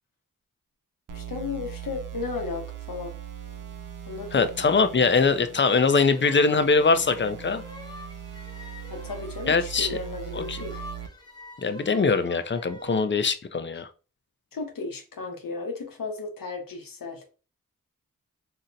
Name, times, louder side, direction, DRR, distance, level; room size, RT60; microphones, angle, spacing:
voice 1, 1.1-3.1 4.1-4.5 8.9-10.8 14.5-17.3, left 4 dB, 85° left, 0.8 m, -34 dB
sound 1, 1.1-11.1, right 10 dB, 70° right, 0.6 m, -40 dB
voice 2, 4.3-7.6 9.5-10.0 10.3-10.6 11.6-13.9, left 4 dB, 35° left, 0.5 m, -22 dB
sound 2, 5.6-13.1, left 1 dB, 10° left, 0.8 m, -46 dB
2.7 x 2.0 x 3.8 m
cardioid pair, 40°, 33 cm